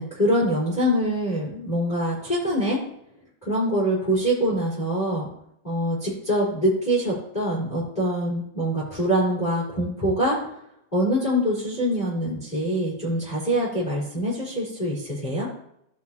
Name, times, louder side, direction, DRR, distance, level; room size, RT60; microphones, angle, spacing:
voice 1, 0.0-2.8 3.4-5.3 5.6-10.4 10.9-15.5, equal, 10° left, -6 dB, 4.1 m, -24 dB
16.5 x 5.8 x 3.0 m, 0.75 s
omnidirectional pair, 4.7 m